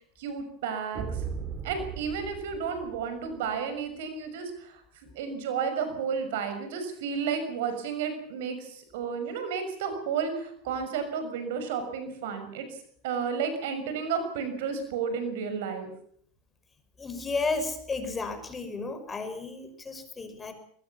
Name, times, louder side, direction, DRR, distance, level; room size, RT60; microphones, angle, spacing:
voice 1, 0.2-1.2 1.6-4.8 5.1-12.8 13.0-15.9, right 6 dB, 75° right, 8 dB, 6.1 m, -32 dB
sound 1, 0.9-3.6, right 6 dB, 40° right, 3.1 m, -38 dB
voice 2, 17.0-20.5, left 3 dB, 20° left, 9 dB, 5.6 m, -33 dB
22.0 x 20.0 x 7.2 m, 0.64 s
hypercardioid pair, 100°, 0 cm